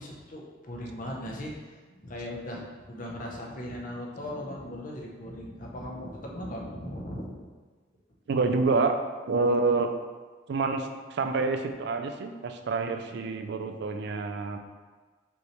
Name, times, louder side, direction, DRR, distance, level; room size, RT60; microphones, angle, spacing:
voice 1, 0.0-1.5 1.9-7.5, left 1 dB, 45° left, -1 dB, 0.7 m, -38 dB
voice 2, 8.3-9.0 9.3-9.9 10.5-14.6, right 3 dB, 60° right, 7 dB, 0.4 m, -27 dB
5.2 x 3.1 x 3.1 m, 1.4 s
head